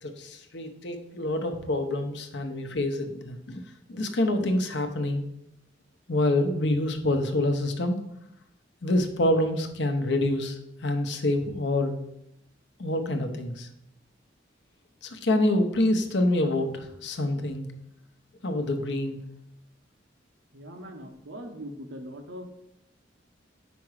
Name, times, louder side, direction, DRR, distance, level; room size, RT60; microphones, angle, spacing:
voice 1, 0.0-3.6 3.9-5.2 6.1-8.0 8.8-12.0 12.8-13.7 15.0-17.7 18.4-19.2, left 1 dB, 65° left, 6 dB, 0.8 m, -26 dB
voice 2, 20.5-22.5, equal, 85° right, 5 dB, 0.9 m, -41 dB
5.1 x 4.8 x 4.8 m, 0.80 s
head